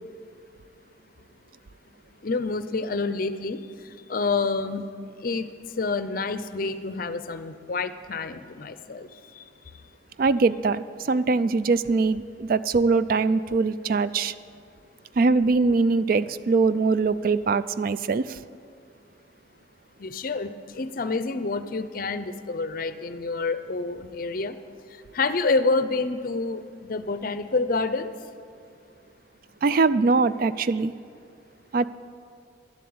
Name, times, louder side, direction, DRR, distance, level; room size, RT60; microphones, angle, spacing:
voice 1, 2.2-4.9 5.2-9.5 20.0-24.6 24.9-28.1, left 3 dB, 45° left, 12 dB, 0.5 m, -28 dB
voice 2, 10.2-14.3 15.2-18.4 29.6-30.9 31.7-31.8, right 4 dB, 50° right, 15 dB, 0.3 m, -22 dB
12.0 x 7.5 x 8.6 m, 2.3 s
head